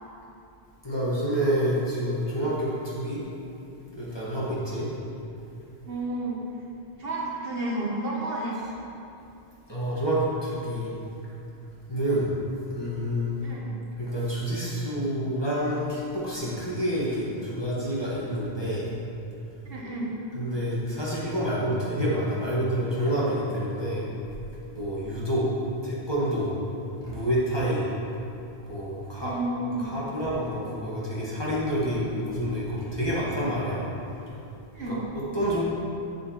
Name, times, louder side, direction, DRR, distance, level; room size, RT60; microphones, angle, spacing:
voice 1, 0.8-3.2 4.0-4.9 9.7-10.9 11.9-12.3 12.7-13.4 14.0-18.9 20.3-24.0 24.7-25.5 25.8-26.5 27.0-27.8 28.7-29.3 29.8-33.8 34.9-35.6, equal, 25° left, -8 dB, 1.6 m, -28 dB
voice 2, 5.8-6.4 7.0-8.6 13.4-13.7 19.7-20.1 29.2-30.0 34.7-35.0, right 2 dB, 65° right, -4 dB, 1.3 m, -31 dB
8.3 x 7.3 x 3.1 m, 2.7 s
omnidirectional pair, 1.1 m